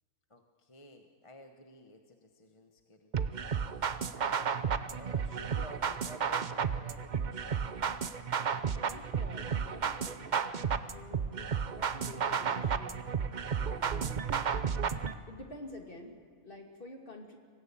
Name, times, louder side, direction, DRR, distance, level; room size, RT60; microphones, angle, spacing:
voice 1, 0.3-7.6, left 1 dB, 25° left, 4 dB, 1.1 m, -53 dB
sound 1, 3.1-15.1, right 6 dB, 45° right, 0.6 m, -33 dB
voice 2, 8.8-10.4 10.7-13.0 13.7-14.3 14.8-15.0 15.3-17.4, left 2 dB, 40° left, 2 dB, 2.8 m, -49 dB
25.0 x 17.5 x 8.6 m, 2.1 s
omnidirectional pair, 1.4 m